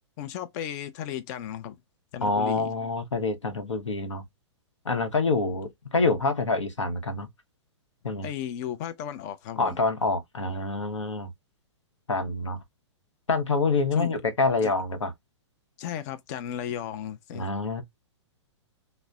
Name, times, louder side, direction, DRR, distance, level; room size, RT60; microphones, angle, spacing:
voice 1, 0.2-1.8 2.1-2.7 8.2-9.8 13.9-14.1 14.6-14.7 15.8-17.5, left 10 dB, 35° left, 0.4 m, -35 dB
voice 2, 2.2-4.2 4.8-7.3 8.0-8.3 9.6-11.3 12.1-12.6 13.3-15.1 17.3-17.8, left 3 dB, 90° left, 0.8 m, -26 dB
3.9 x 2.0 x 2.2 m
hypercardioid pair, 120°, 15 cm